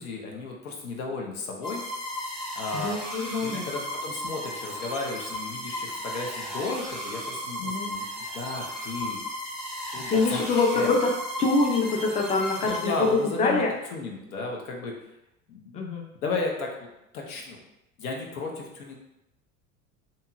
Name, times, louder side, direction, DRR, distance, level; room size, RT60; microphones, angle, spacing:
voice 1, 0.0-1.8 2.6-3.0 3.3-9.2 9.9-10.9 12.6-15.0 15.5-15.8 16.2-16.9 17.1-17.6 18.0-19.0, left 3 dB, 80° left, 0 dB, 0.7 m, -34 dB
sound 1, 1.6-13.5, equal, ahead, 1.0 m, -35 dB
voice 2, 2.7-3.6 7.6-7.9 10.1-11.1 11.4-13.1 13.4-13.7 15.7-16.1, left 3 dB, 15° left, 0 dB, 0.4 m, -25 dB
2.8 x 2.7 x 2.3 m, 0.87 s
hypercardioid pair, 75°, 43 cm